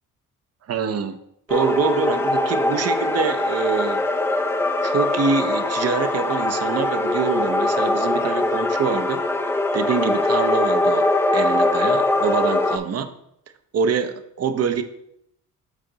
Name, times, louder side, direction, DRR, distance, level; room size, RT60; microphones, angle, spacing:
voice 1, 0.7-1.2 1.5-4.0 4.8-9.2 9.7-13.1 13.7-14.8, right 6 dB, 50° right, 9 dB, 0.6 m, -25 dB
sound 1, 1.5-12.8, left 2 dB, 10° left, 0.4 m, -22 dB
8.2 x 3.8 x 3.9 m, 0.75 s
cardioid pair, 130°, 33 cm